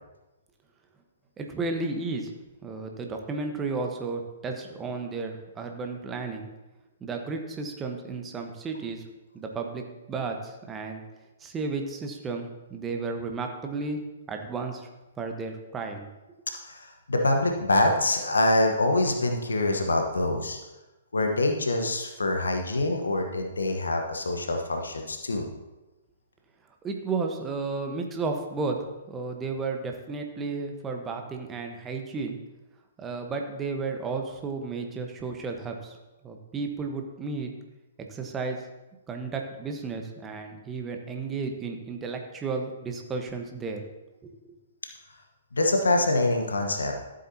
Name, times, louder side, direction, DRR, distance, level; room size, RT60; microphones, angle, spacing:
voice 1, 1.4-2.3 2.6-6.5 7.0-9.0 9.3-11.0 11.4-14.0 14.3-14.9 15.2-16.1 26.8-28.8 29.1-32.4 33.0-36.0 36.2-37.5 38.1-38.6 39.1-43.9 44.2-44.6, right 4 dB, 15° right, 4 dB, 1.1 m, -33 dB
voice 2, 16.6-20.6 21.1-25.5 45.5-46.9, left 2 dB, 75° left, 4 dB, 1.1 m, -25 dB
13.5 x 7.8 x 2.8 m, 1.1 s
figure-of-eight pair, 120°, 0 cm